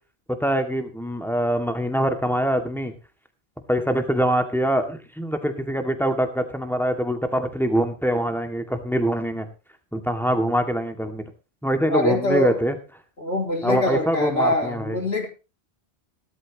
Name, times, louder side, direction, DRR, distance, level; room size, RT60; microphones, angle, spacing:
voice 1, 0.4-2.9 3.7-9.5 9.9-11.2 11.6-12.8 13.6-15.0, equal, ahead, 5 dB, 2.2 m, -24 dB
voice 2, 11.9-12.6 13.2-15.3, left 1 dB, 75° left, -4 dB, 4.1 m, -24 dB
18.5 x 12.5 x 3.1 m, 0.31 s
omnidirectional pair, 1.1 m